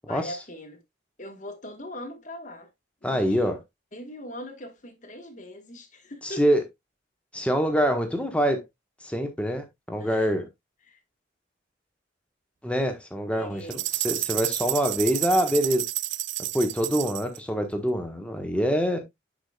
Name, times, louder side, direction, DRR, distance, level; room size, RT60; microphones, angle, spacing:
voice 1, 0.1-0.8 1.2-2.7 3.0-3.5 3.9-6.6 10.0-10.3 10.9-11.0 13.3-13.8, left 1 dB, 40° left, 1.5 m, -41 dB
voice 2, 3.0-3.6 6.2-6.6 7.3-8.6 9.0-10.5 12.6-15.8 16.5-19.0, equal, 5° left, 1.3 m, -25 dB
sound 1, 13.7-17.4, right 16 dB, 75° right, 0.4 m, -30 dB
10.5 x 5.1 x 2.3 m
head